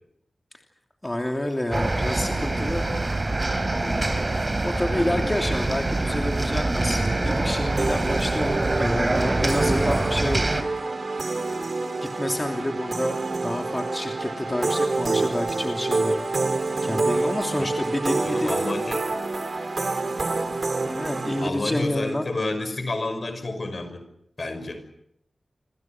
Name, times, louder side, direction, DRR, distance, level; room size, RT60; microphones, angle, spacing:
voice 1, 1.0-2.9 3.8-10.6 12.0-13.2 13.4-16.3 16.8-18.5 20.8-22.3, left 1 dB, 20° left, 2 dB, 3.0 m, -29 dB
sound 1, 1.7-10.6, right 2 dB, 35° right, 3.5 m, -25 dB
sound 2, 7.8-21.5, right 3 dB, 65° right, 2.6 m, -27 dB
voice 2, 18.2-19.1 21.4-24.0 24.4-24.8, left 2 dB, 55° left, 9 dB, 5.8 m, -30 dB
28.0 x 26.0 x 6.2 m, 0.75 s
wide cardioid pair, 60°, 0 cm